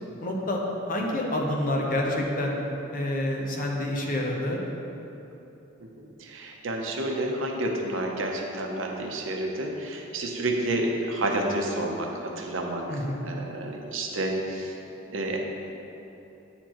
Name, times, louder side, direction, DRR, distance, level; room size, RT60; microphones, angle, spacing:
voice 1, 0.2-0.6 0.9-2.6 2.9-4.6 12.9-13.2, left 1 dB, 45° left, -1 dB, 0.8 m, -28 dB
voice 2, 5.8-12.8 13.2-14.8 15.1-15.4, right 1 dB, 70° right, 1 dB, 0.7 m, -30 dB
9.2 x 4.4 x 3.0 m, 2.9 s
head